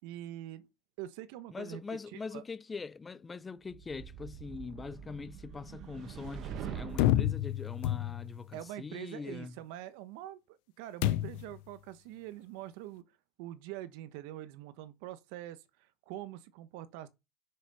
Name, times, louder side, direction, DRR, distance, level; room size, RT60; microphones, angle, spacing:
voice 1, 0.0-0.7 1.0-2.4 8.5-13.0 13.4-17.1, right 13 dB, 75° right, 1.1 m, -44 dB
voice 2, 1.5-9.5, left 4 dB, 15° left, 0.6 m, -43 dB
sound 1, 3.7-7.4, right 8 dB, 45° right, 1.1 m, -44 dB
sound 2, 7.0-8.5 11.0-11.6, left 14 dB, 80° left, 0.6 m, -29 dB
6.8 x 6.0 x 6.9 m
cardioid pair, 160°, 0 cm